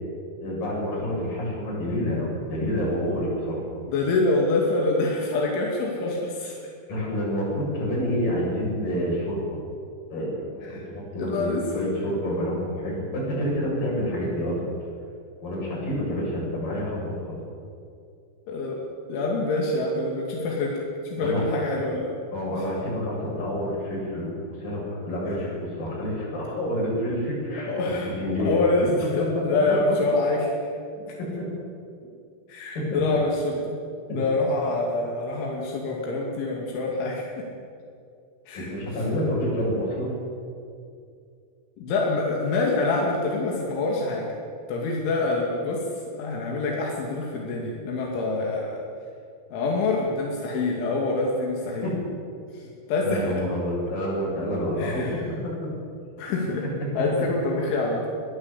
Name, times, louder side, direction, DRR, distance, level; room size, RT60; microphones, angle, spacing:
voice 1, 0.4-3.6 6.9-9.6 10.1-14.6 15.4-17.1 21.2-21.6 22.3-28.5 31.2-31.5 32.9-33.0 34.1-34.2 38.7-40.1 51.8-51.9 53.0-55.2, equal, 50° left, -4 dB, 9.4 m, -28 dB
voice 2, 3.9-6.6 10.6-10.8 11.2-11.9 18.5-18.8 19.1-22.1 22.6-22.7 27.7-28.1 28.4-30.5 32.5-33.8 34.1-37.4 38.5-38.7 41.8-44.3 44.7-48.8 49.5-52.0 52.5-52.6 52.9-53.4 54.8-55.2 56.2-56.6 56.9-58.1, left 2 dB, 85° left, -2 dB, 5.0 m, -26 dB
22.0 x 17.5 x 8.5 m, 2.4 s
omnidirectional pair, 5.3 m